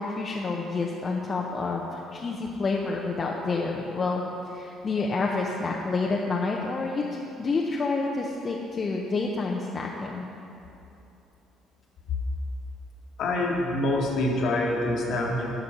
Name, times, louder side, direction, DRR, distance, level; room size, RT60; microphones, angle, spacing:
voice 1, 0.0-4.2 4.5-10.3, left 3 dB, 35° left, -1 dB, 0.7 m, -29 dB
voice 2, 13.2-15.5, left 1 dB, 55° left, 0 dB, 1.4 m, -26 dB
12.0 x 5.2 x 5.6 m, 2.8 s
figure-of-eight pair, 50°, 0 cm